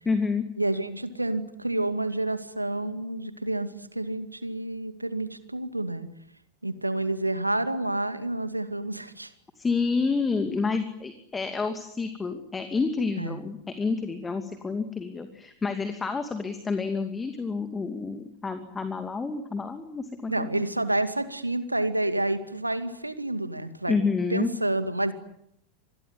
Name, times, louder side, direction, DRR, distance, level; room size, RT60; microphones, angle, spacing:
voice 1, 0.1-0.5 9.6-20.5 23.9-24.5, left 4 dB, 15° left, 9 dB, 2.4 m, -29 dB
voice 2, 0.6-6.1 6.6-9.3 13.2-13.4 20.3-24.0 24.3-25.1, right 1 dB, 85° right, 11 dB, 2.3 m, -29 dB
27.0 x 21.5 x 9.7 m, 0.75 s
figure-of-eight pair, 90°, 0 cm